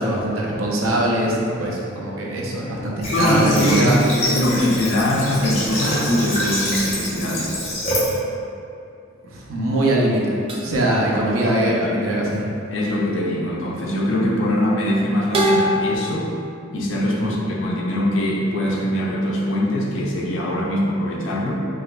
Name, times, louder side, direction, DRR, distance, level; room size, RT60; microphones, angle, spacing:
voice 1, 0.0-4.0 9.2-10.3 10.6-12.5 17.2-17.3, right 1 dB, 90° right, -3 dB, 0.6 m, -22 dB
Water / Water tap faucet, 3.0-8.2, equal, 30° left, 0.9 m, -25 dB
voice 2, 3.1-7.6 10.7-10.8 11.4-12.0 12.7-16.3 16.7-21.5, left 1 dB, 65° left, -3 dB, 0.6 m, -22 dB
sound 1, 10.5-10.8 12.0-13.3 15.3-16.0, equal, 25° right, 0.4 m, -22 dB
4.8 x 2.4 x 2.2 m, 2.6 s
head